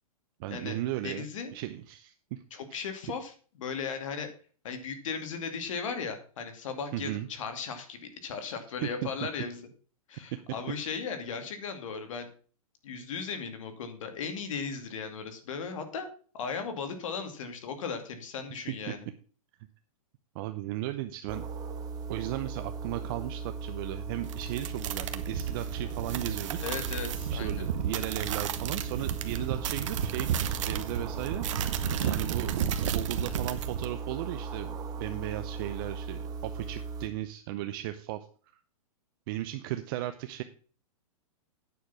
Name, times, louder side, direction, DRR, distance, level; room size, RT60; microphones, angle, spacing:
voice 1, 0.4-1.3 1.5-2.6 6.9-7.3 8.8-9.1 18.9-19.0 20.3-21.5 22.1-26.6 27.3-32.5 32.8-38.3 39.3-40.4, right 15 dB, 40° right, 9 dB, 0.7 m, -36 dB
voice 2, 1.0-1.5 2.5-3.3 3.6-4.3 4.6-9.6 10.1-12.3 12.8-16.1 16.3-19.1 26.6-27.7 31.8-32.2, left 5 dB, 60° left, 7 dB, 2.4 m, -37 dB
sound 1, 21.3-37.1, right 5 dB, 20° right, 1.3 m, -38 dB
sound 2, 24.2-33.8, right 9 dB, 60° right, 1.2 m, -33 dB
9.3 x 6.7 x 5.8 m, 0.41 s
hypercardioid pair, 145°, 18 cm